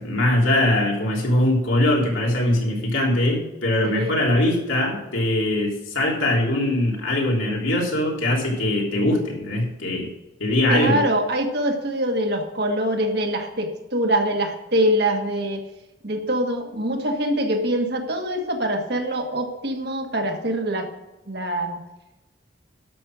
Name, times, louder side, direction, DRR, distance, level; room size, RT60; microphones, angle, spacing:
voice 1, 0.0-10.1 10.4-11.0, left 1 dB, 85° left, -2 dB, 3.3 m, -21 dB
voice 2, 3.8-4.1 10.7-15.6 16.0-20.9 21.3-21.8, right 1 dB, 55° right, 3 dB, 1.5 m, -24 dB
12.0 x 6.2 x 6.2 m, 0.99 s
head